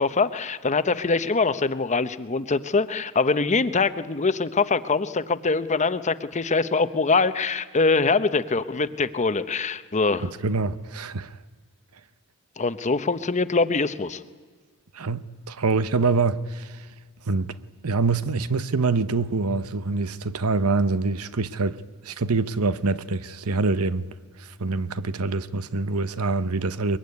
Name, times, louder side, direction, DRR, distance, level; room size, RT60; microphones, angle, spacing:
voice 1, 0.0-10.3 12.6-14.2, left 4 dB, 35° left, 0.8 m, -23 dB
voice 2, 10.2-11.3 14.9-16.8 17.3-17.5 17.8-24.1 24.6-27.0, right 3 dB, 85° right, 0.9 m, -25 dB
22.5 x 22.0 x 9.6 m
head